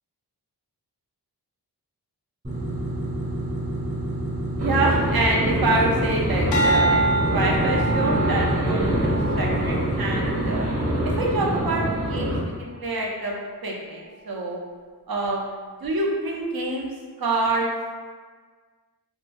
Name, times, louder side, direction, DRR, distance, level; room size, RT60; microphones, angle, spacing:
sound 1, 2.4-12.2, right 1 dB, 20° right, 0.5 m, -30 dB
voice 1, 4.6-7.0 7.3-10.7 11.2-13.3 13.6-14.6 15.1-16.9 17.2-17.7, right 2 dB, 60° right, -2 dB, 0.6 m, -26 dB
sound 2, 4.6-12.4, equal, 80° right, 1.1 m, -25 dB
sound 3, 6.5-11.0 11.5-11.9, right 2 dB, 85° left, 0.5 m, -27 dB
2.9 x 2.2 x 2.5 m, 1.5 s
wide cardioid pair, 55°, 40 cm